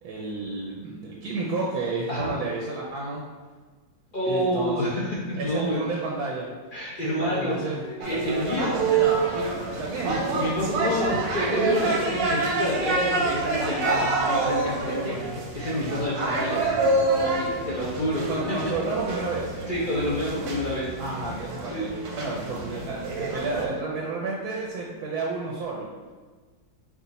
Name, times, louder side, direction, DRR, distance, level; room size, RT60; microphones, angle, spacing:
voice 1, 0.0-3.3 4.2-4.9 5.4-6.5 7.0-7.8 9.8-10.2 18.3-19.6 21.0-25.9, right 3 dB, 70° right, -2 dB, 1.1 m, -31 dB
voice 2, 4.1-5.9 6.7-8.7 9.3-9.6 10.0-16.9 17.2-18.4 19.7-20.9 21.7-21.9, equal, 55° left, -7 dB, 0.5 m, -28 dB
sound 1, 8.0-23.7, right 3 dB, 85° right, 1.4 m, -27 dB
4.8 x 2.5 x 4.0 m, 1.4 s
omnidirectional pair, 1.9 m